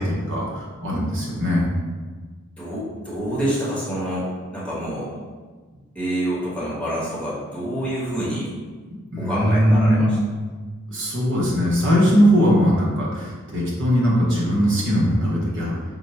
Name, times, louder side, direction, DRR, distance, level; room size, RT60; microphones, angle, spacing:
voice 1, 0.0-1.7 9.1-10.2 10.9-15.7, equal, 55° right, -5 dB, 0.9 m, -20 dB
voice 2, 2.6-4.3 4.5-5.1 5.7-8.5 9.2-10.2, right 1 dB, 5° left, -8 dB, 1.0 m, -27 dB
3.8 x 2.1 x 4.3 m, 1.4 s
head